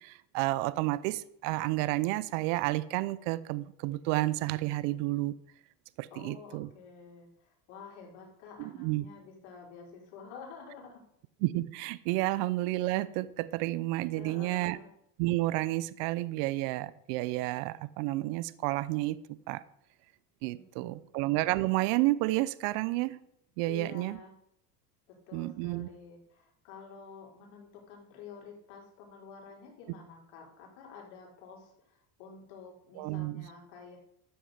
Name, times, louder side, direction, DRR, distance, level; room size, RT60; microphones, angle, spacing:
voice 1, 0.0-5.3 6.0-6.7 8.6-9.0 11.4-14.8 15.2-19.6 20.4-23.2 23.6-24.2 25.3-25.9 33.0-33.5, right 18 dB, 70° right, 0.7 m, -31 dB
voice 2, 6.1-11.0 14.2-14.9 20.5-21.2 23.7-24.3 25.1-34.0, left 5 dB, 70° left, 4.2 m, -50 dB
12.5 x 7.8 x 5.0 m
supercardioid pair, 95°, 48 cm